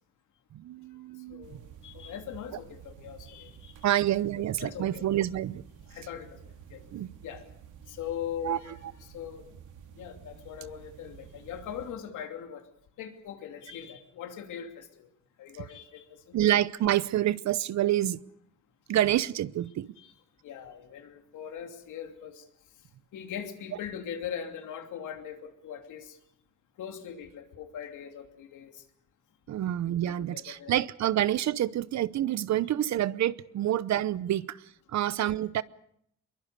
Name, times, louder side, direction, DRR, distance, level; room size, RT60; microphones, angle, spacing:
voice 1, 0.5-1.6 3.8-5.6 6.9-7.1 8.4-8.6 16.3-18.2 18.9-19.9 29.5-35.6, right 12 dB, 65° right, 18 dB, 0.8 m, -28 dB
voice 2, 1.3-3.9 4.6-5.0 5.9-6.9 7.2-7.4 7.9-8.7 9.1-9.6 10.0-12.7 13.0-15.1 15.4-16.4 20.0-20.1 20.4-22.5 23.1-26.2 26.8-28.8 30.0-30.8, left 9 dB, 80° left, 6 dB, 2.9 m, -41 dB
sound 1, 1.4-11.9, right 8 dB, 80° right, 2.5 m, -51 dB
22.5 x 22.0 x 6.7 m, 0.71 s
cardioid pair, 90°, 30 cm